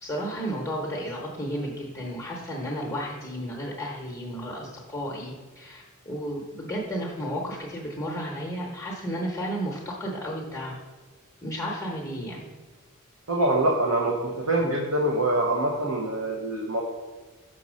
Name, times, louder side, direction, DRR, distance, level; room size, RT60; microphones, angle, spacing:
voice 1, 0.0-10.8 11.4-12.5, equal, 10° left, -3 dB, 0.9 m, -33 dB
voice 2, 13.3-16.8, right 1 dB, 75° right, -1 dB, 0.9 m, -25 dB
6.2 x 4.1 x 6.2 m, 1.3 s
head